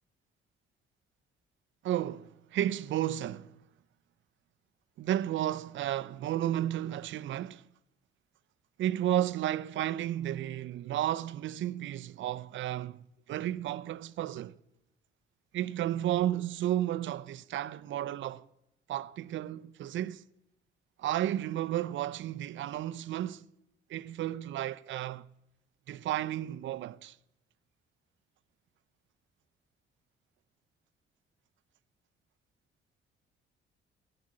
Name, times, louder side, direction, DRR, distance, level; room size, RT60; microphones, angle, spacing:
voice 1, 1.8-3.5 5.0-7.7 8.8-14.6 15.5-18.5 18.9-20.2 21.0-23.4 23.9-25.3 25.9-27.2, right 12 dB, 70° right, 0.6 m, -33 dB
14.0 x 12.0 x 7.6 m
cardioid pair, 90°, 20 cm